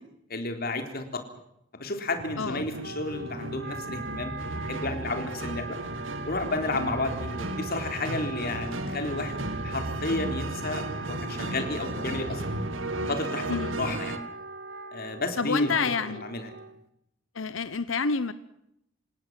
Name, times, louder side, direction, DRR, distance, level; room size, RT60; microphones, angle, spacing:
voice 1, 0.3-1.2 1.7-5.8 6.2-9.4 9.6-12.4 13.1-13.5 13.8-14.2 14.9-15.7 16.2-16.5, left 2 dB, 50° left, 6 dB, 3.9 m, -32 dB
sound 1, 2.2-14.2, right 1 dB, 85° right, 2.3 m, -35 dB
voice 2, 2.4-2.7 13.5-13.8 15.4-16.2 17.3-18.3, left 4 dB, 85° left, 14 dB, 1.0 m, -28 dB
Wind instrument woodwind instrument, 2.8-16.9, right 3 dB, 60° right, 1.5 m, -40 dB
28.0 x 18.0 x 7.6 m, 0.78 s
head